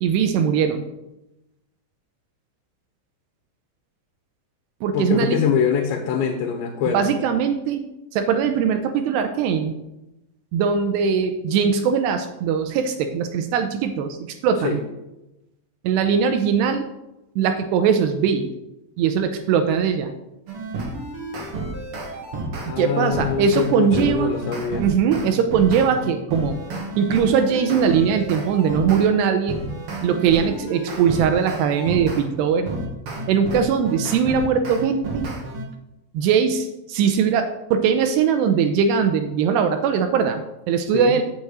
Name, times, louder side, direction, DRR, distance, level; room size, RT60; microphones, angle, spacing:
voice 1, 0.0-0.8 4.8-5.4 6.9-7.9 8.1-9.7 10.5-14.2 14.4-14.8 15.8-16.9 17.4-18.5 19.0-20.1 22.8-24.3 24.8-26.6 27.0-29.6 30.0-32.7 33.3-35.3 36.1-40.4 40.7-41.2, right 7 dB, 85° right, 7 dB, 2.5 m, -20 dB
voice 2, 4.9-7.2 14.6-14.8 22.6-24.8 40.9-41.1, left 7 dB, 75° left, 2 dB, 3.4 m, -24 dB
sound 1, 20.5-22.7 23.1-29.1 29.5-32.2 32.7-35.6, right 2 dB, 50° right, 1.7 m, -31 dB
8.5 x 6.0 x 8.0 m, 0.93 s
omnidirectional pair, 5.5 m